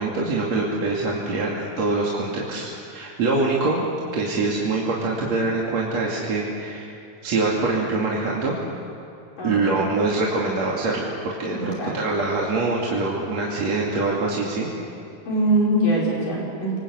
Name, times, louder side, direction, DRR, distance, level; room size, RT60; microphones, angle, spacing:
voice 1, 0.0-3.8 4.1-6.9 7.2-8.6 9.4-14.7, right 3 dB, 45° right, -4 dB, 3.5 m, -24 dB
voice 2, 9.4-9.9 11.5-11.9 15.2-16.8, right 1 dB, 55° left, -4 dB, 6.8 m, -23 dB
28.5 x 25.0 x 8.2 m, 2.6 s
omnidirectional pair, 4.5 m